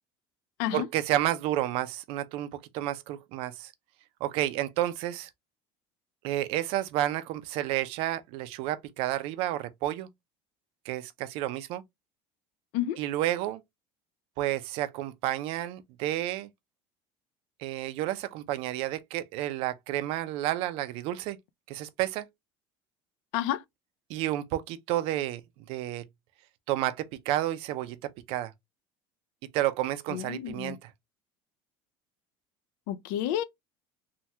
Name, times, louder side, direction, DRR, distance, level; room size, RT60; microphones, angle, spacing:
voice 1, 0.7-3.7 4.2-5.3 6.2-10.1 10.9-11.8 13.0-13.6 14.4-16.5 17.6-21.4 21.7-22.3 24.1-25.4 25.7-26.0 26.7-28.5 29.5-30.9, right 14 dB, 50° right, 0.4 m, -31 dB
voice 2, 30.1-30.7 32.9-33.4, left 12 dB, 70° left, 0.4 m, -30 dB
3.2 x 2.2 x 2.7 m
cardioid pair, 175°, 12 cm